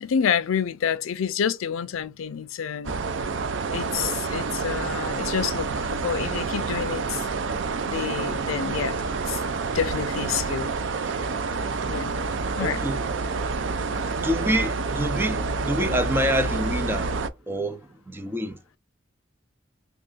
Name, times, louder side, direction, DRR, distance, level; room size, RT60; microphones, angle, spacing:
voice 1, 0.0-3.0 3.7-7.3 7.8-9.4 9.7-10.7 11.9-12.1 12.6-12.8, left 7 dB, 90° left, 0.4 m, -28 dB
sound 1, 2.8-17.3, right 4 dB, 65° right, 0.5 m, -28 dB
voice 2, 12.6-13.0 14.1-18.6, equal, 10° right, 0.5 m, -27 dB
3.4 x 2.5 x 3.7 m
head